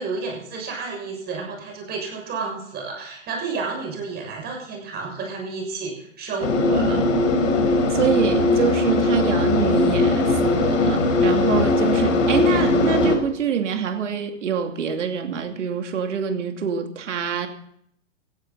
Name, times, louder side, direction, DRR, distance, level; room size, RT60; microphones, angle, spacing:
voice 1, 0.0-7.0, right 4 dB, 25° right, 1 dB, 6.8 m, -31 dB
sound 1, 6.4-13.2, left 2 dB, 75° left, 4.1 m, -19 dB
voice 2, 7.9-17.5, right 7 dB, 70° right, 6 dB, 2.6 m, -25 dB
16.5 x 15.5 x 4.1 m, 0.69 s
hypercardioid pair, 120°, 38 cm